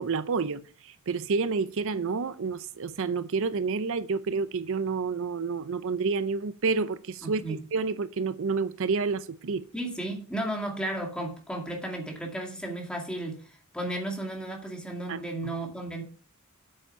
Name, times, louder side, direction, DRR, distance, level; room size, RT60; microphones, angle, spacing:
voice 1, 0.0-9.7 15.1-15.5, right 4 dB, 65° right, 0.5 m, -29 dB
voice 2, 7.2-7.6 9.7-16.0, right 1 dB, 5° left, 2.2 m, -34 dB
8.5 x 7.0 x 5.5 m
head